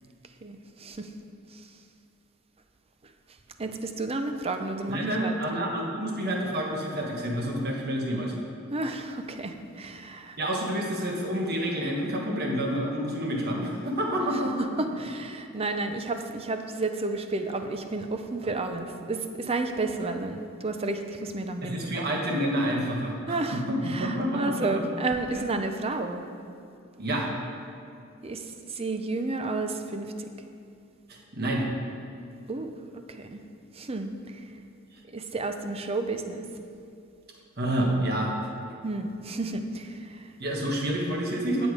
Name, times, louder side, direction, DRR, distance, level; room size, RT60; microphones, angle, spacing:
voice 1, 0.4-1.1 1.5-1.6 3.6-5.4 8.7-10.4 14.6-22.2 23.3-26.3 28.2-30.3 32.5-32.8 33.1-33.4 33.7-34.4 35.1-36.5 38.8-40.3, right 2 dB, 30° right, 7 dB, 0.6 m, -32 dB
voice 2, 4.9-8.3 10.4-14.5 21.6-24.8 25.3-25.5 27.0-27.3 31.1-31.7 37.6-38.3 40.4-41.7, right 1 dB, 50° right, 0 dB, 1.4 m, -28 dB
10.0 x 7.1 x 4.8 m, 2.5 s
head